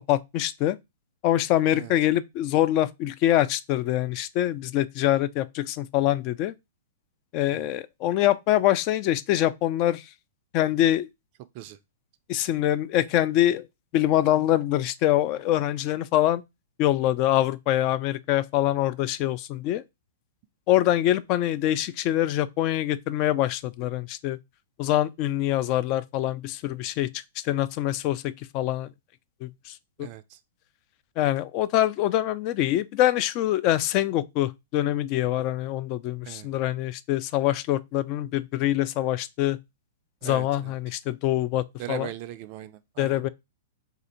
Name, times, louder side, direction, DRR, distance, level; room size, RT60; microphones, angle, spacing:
voice 1, 0.1-0.8 1.2-6.5 7.3-10.1 10.5-11.1 12.3-13.6 13.9-16.4 16.8-19.8 20.7-24.4 24.8-27.1 27.4-28.9 29.4-29.7 30.0-30.1 31.2-39.6 40.2-42.1 43.0-43.3, left 13 dB, 40° left, 0.3 m, -24 dB
voice 2, 30.0-30.4 36.2-36.5 40.2-40.7 41.8-43.3, right 14 dB, 45° right, 0.3 m, -39 dB
2.8 x 2.5 x 4.1 m
hypercardioid pair, 115°, 0 cm